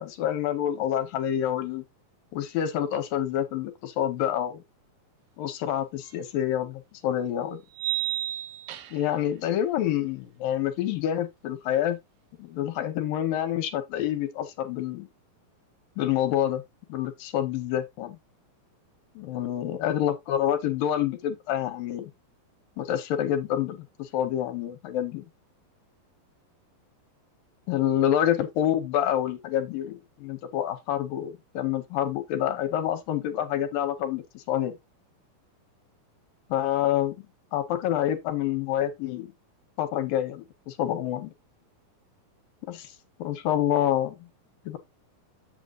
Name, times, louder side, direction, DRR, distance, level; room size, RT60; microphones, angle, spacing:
voice 1, 0.0-1.8 2.3-4.6 5.4-7.6 8.9-12.0 12.4-15.1 16.0-16.6 16.9-18.2 19.2-22.1 22.8-25.2 27.7-34.7 36.5-37.2 37.5-39.3 39.8-41.3 42.7-42.9 43.2-44.2 44.7-44.8, left 11 dB, 75° left, 2.7 m, -27 dB
sound 1, 6.1-6.2 7.7-9.2, right 14 dB, 75° right, 2.4 m, -31 dB
8.0 x 7.9 x 2.5 m
omnidirectional pair, 4.2 m